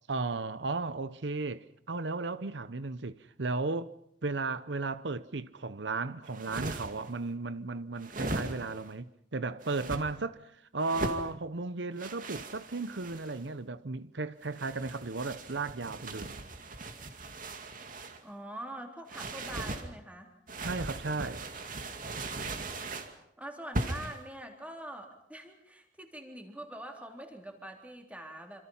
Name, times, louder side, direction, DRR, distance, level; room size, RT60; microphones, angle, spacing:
voice 1, 0.1-3.9 4.2-10.4 10.7-16.3 20.6-21.4, right 3 dB, 80° right, 0.9 m, -35 dB
sound 1, 6.2-7.1 8.0-8.9 9.6-10.0 10.8-11.3 12.0-13.4 14.4-18.2 19.1-19.9 20.5-23.1 23.7-24.2, right 2 dB, 50° right, 2.4 m, -39 dB
voice 2, 18.2-20.3 23.4-28.6, right 1 dB, 10° right, 3.7 m, -44 dB
27.5 x 26.5 x 5.7 m
head